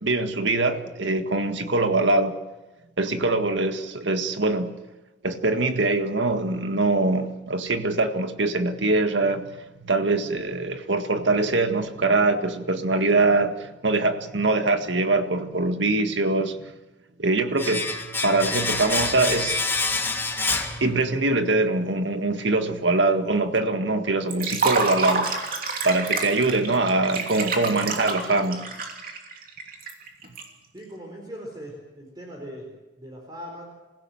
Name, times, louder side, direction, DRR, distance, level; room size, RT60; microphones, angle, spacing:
voice 1, 0.0-2.4 3.0-4.8 5.2-16.7 17.2-17.9 18.2-19.6 20.8-25.4 25.8-28.7, right 2 dB, 85° right, 7 dB, 1.8 m, -23 dB
Domestic sounds home sounds, 17.6-21.4 21.7-21.8, left 3 dB, 15° left, 1.9 m, -27 dB
Liquid, 24.3-30.4, right 3 dB, 50° right, 3.0 m, -28 dB
voice 2, 30.7-32.7 33.0-33.6, equal, 25° right, 0 dB, 4.4 m, -39 dB
27.5 x 16.5 x 7.8 m, 1.1 s
head